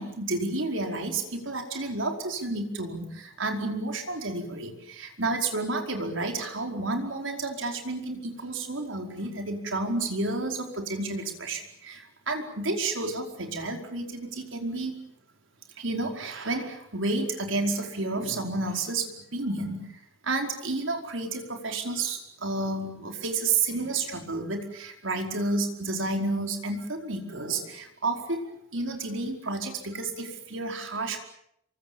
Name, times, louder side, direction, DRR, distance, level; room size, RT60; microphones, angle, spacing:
voice 1, 0.0-15.0 15.7-31.2, right 2 dB, 75° right, 4 dB, 5.0 m, -31 dB
28.0 x 24.0 x 7.2 m, 0.75 s
head